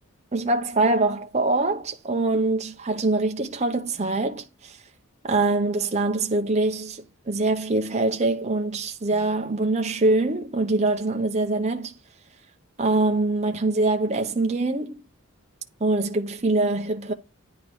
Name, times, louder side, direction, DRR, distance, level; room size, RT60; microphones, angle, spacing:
voice 1, 0.3-4.8 5.2-11.9 12.8-14.9 15.8-17.1, right 2 dB, 30° right, 0.7 m, -24 dB
9.5 x 3.6 x 4.7 m
head